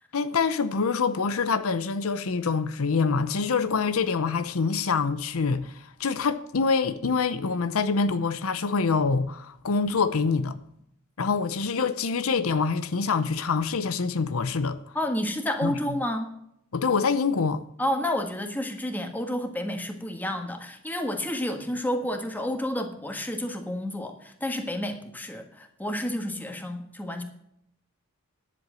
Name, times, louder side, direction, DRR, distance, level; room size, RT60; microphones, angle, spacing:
voice 1, 0.1-10.6 11.2-14.8 15.6-15.7 16.7-17.6, left 5 dB, 75° left, 0.7 m, -25 dB
voice 2, 14.9-16.3 17.8-27.2, left 1 dB, 10° left, 1.5 m, -30 dB
10.5 x 7.8 x 7.6 m
head